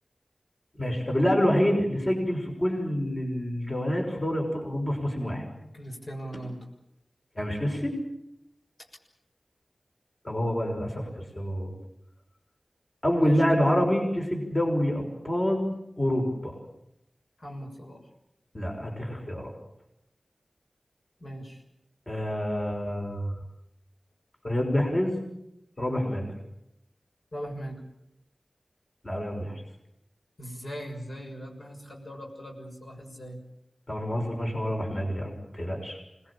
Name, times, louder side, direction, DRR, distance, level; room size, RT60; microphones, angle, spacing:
voice 1, 0.8-5.5 7.4-7.9 10.2-11.1 11.4-11.7 13.0-15.7 16.0-16.6 18.5-19.5 22.1-23.3 24.4-25.1 25.8-26.2 29.0-29.6 33.9-36.0, equal, 30° left, 1 dB, 6.1 m, -27 dB
voice 2, 5.7-6.7 8.8-8.9 13.2-13.4 17.4-18.1 21.2-21.6 27.3-27.8 30.4-33.4, equal, 55° left, 0 dB, 6.7 m, -40 dB
26.5 x 20.5 x 8.7 m, 0.83 s
wide cardioid pair, 80°, 0 cm